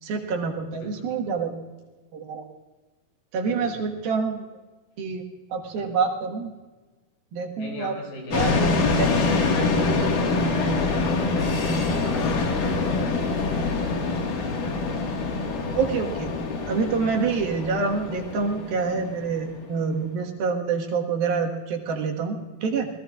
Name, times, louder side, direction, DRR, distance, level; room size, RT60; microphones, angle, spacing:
voice 1, 0.0-1.5 2.1-2.5 3.3-4.5 5.0-5.2 5.5-6.5 7.3-8.0 8.3-8.5 9.0-9.1 15.8-16.3 16.7-22.9, right 5 dB, 75° right, 2 dB, 3.4 m, -26 dB
voice 2, 0.7-1.2 3.4-3.9 5.7-5.9 7.5-14.8, left 2 dB, 90° left, -1 dB, 7.6 m, -38 dB
sound 1, 8.3-19.8, left 3 dB, 65° left, 3.3 m, -25 dB
28.5 x 19.0 x 2.5 m, 1.2 s
omnidirectional pair, 4.2 m